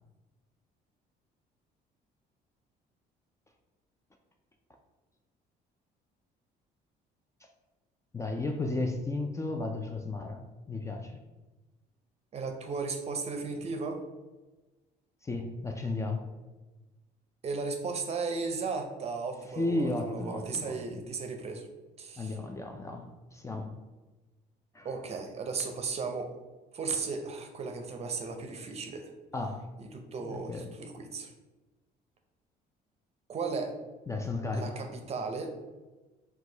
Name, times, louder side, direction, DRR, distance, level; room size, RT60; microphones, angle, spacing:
voice 1, 8.1-10.4 10.7-11.2 15.2-16.3 19.6-21.0 22.2-23.7 24.7-24.9 29.3-29.7 30.2-30.7 34.1-34.8, left 2 dB, 15° left, 4 dB, 0.4 m, -34 dB
voice 2, 12.3-14.0 17.4-21.7 22.0-22.4 24.8-26.3 26.7-29.1 29.9-31.3 33.3-33.7 34.5-35.5, right 4 dB, 40° right, 5 dB, 0.6 m, -35 dB
4.6 x 2.3 x 3.8 m, 1.2 s
cardioid pair, 110°, 17 cm